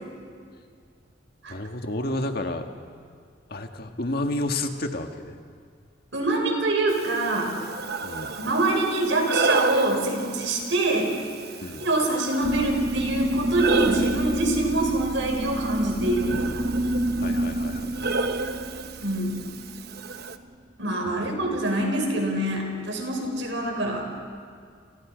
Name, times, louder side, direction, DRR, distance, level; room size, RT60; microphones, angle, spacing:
voice 1, 1.5-2.7 3.5-5.4 8.0-8.3 11.6-11.9 17.2-18.1 21.1-21.6, left 1 dB, 55° left, 4 dB, 1.8 m, -31 dB
voice 2, 6.1-7.6 8.4-11.1 11.8-16.5 19.0-19.4 20.8-24.1, right 2 dB, 85° right, 2 dB, 5.6 m, -25 dB
Breathing, 6.9-20.4, right 3 dB, 60° right, 1.1 m, -32 dB
sound 1, 12.4-20.4, right 1 dB, 30° right, 1.0 m, -28 dB
29.5 x 29.0 x 5.2 m, 2.1 s
head